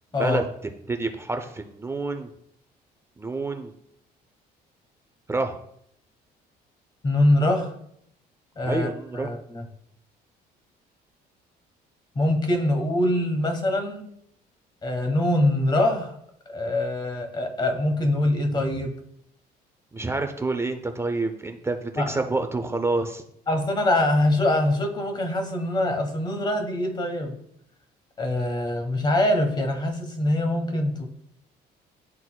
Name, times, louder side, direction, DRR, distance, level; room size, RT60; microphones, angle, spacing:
voice 1, 0.9-2.3 3.2-3.7 5.3-5.6 8.6-9.3 19.9-23.2, right 3 dB, 15° right, 5 dB, 0.5 m, -28 dB
voice 2, 7.0-7.7 8.6-8.9 9.1-9.6 12.1-14.1 14.8-16.1 16.5-18.9 22.0-22.2 23.5-27.4 28.2-31.1, left 1 dB, 25° left, 5 dB, 1.2 m, -23 dB
11.0 x 4.0 x 2.3 m, 0.72 s
cardioid pair, 110°, 17 cm